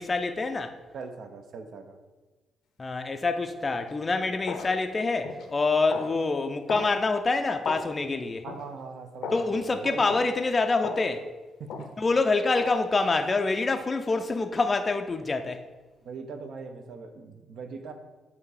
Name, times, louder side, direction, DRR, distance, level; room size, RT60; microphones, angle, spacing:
voice 1, 0.0-0.7 2.8-8.5 9.3-11.3 12.0-15.6, left 3 dB, 30° left, 0.4 m, -26 dB
voice 2, 0.9-2.0 8.4-10.0 11.6-11.9 16.0-17.9, right 4 dB, 65° right, 0.7 m, -40 dB
sound 1, 3.7-3.9 4.5-4.7 5.2-5.5 5.9-6.1 6.7-6.9 7.6-7.9 8.5-8.6 9.2-9.5 10.1-10.3 10.8-11.1 11.7-11.9 12.6-12.8, left 5 dB, 80° left, 0.6 m, -35 dB
7.0 x 2.7 x 4.8 m
cardioid pair, 90°, 0 cm